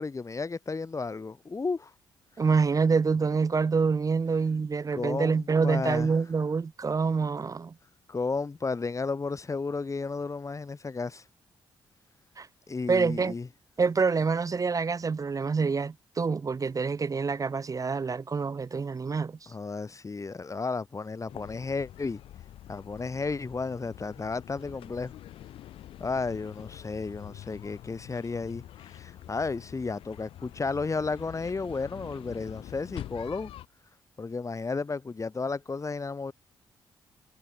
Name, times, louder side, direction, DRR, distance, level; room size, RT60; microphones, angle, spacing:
voice 1, 0.0-1.9 4.9-6.1 8.1-11.2 12.7-13.5 19.5-22.2 22.7-25.1 26.0-28.6 28.9-33.5 34.2-36.3, left 4 dB, 35° left, 1.7 m, -33 dB
voice 2, 2.4-7.7 12.4-12.5 12.9-13.3 13.8-19.5, right 5 dB, 40° right, 0.8 m, -26 dB
sound 1, 21.3-33.7, left 12 dB, 80° left, 2.1 m, -46 dB
supercardioid pair, 50°, 9 cm